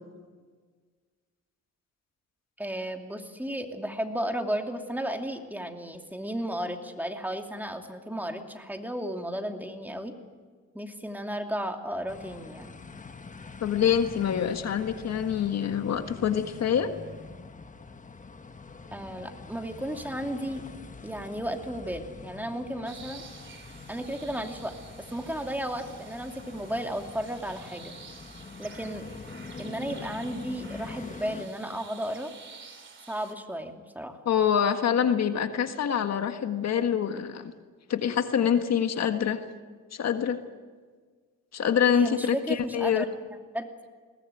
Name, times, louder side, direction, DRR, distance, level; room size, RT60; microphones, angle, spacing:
voice 1, 2.6-10.1 10.7-12.7 18.9-20.6 21.0-23.2 23.9-24.8 25.1-27.9 28.6-29.0 29.6-32.3 33.1-34.2 41.9-43.1 43.5-43.7, right 1 dB, 5° right, 4 dB, 2.7 m, -34 dB
sound 1, 12.1-31.4, left 4 dB, 25° left, 1.4 m, -44 dB
voice 2, 13.6-16.9 34.2-37.5 37.9-39.4 39.9-40.4 41.5-43.0, left 8 dB, 60° left, 7 dB, 1.7 m, -25 dB
sound 2, 22.8-33.3, right 5 dB, 40° right, 3.2 m, -49 dB
21.5 x 19.5 x 9.1 m, 1.5 s
cardioid pair, 90°, 30 cm